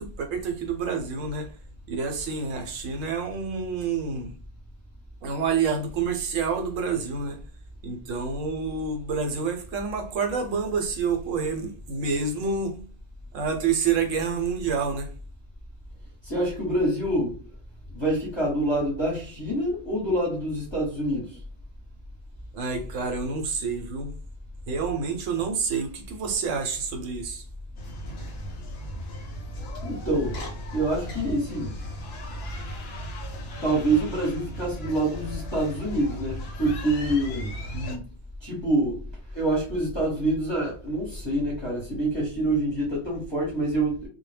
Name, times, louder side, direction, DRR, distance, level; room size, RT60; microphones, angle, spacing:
voice 1, 0.0-1.5 1.9-4.3 5.2-7.4 7.8-12.8 13.3-15.1 22.5-24.1 24.7-27.4 37.7-38.0, right 5 dB, 80° right, 0.9 m, -28 dB
voice 2, 16.2-17.4 17.9-21.4 29.8-30.4 30.7-31.8 33.6-37.6 38.4-39.0 39.3-44.1, right 1 dB, 25° left, 0.8 m, -26 dB
sound 1, 27.8-38.0, equal, 65° left, 0.7 m, -37 dB
2.1 x 2.1 x 3.2 m
omnidirectional pair, 1.3 m